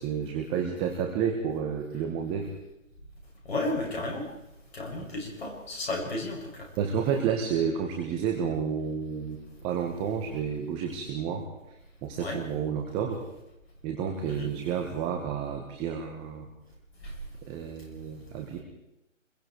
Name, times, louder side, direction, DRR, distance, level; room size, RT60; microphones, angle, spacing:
voice 1, 0.0-2.5 6.8-13.3 13.8-16.5 17.5-18.6, right 7 dB, 15° right, 3 dB, 1.3 m, -31 dB
voice 2, 3.5-4.3 4.7-6.7 12.2-12.4 14.3-14.5 17.0-17.1, left 2 dB, 50° left, -1 dB, 7.8 m, -33 dB
26.5 x 22.0 x 4.7 m, 0.87 s
figure-of-eight pair, 145°, 39 cm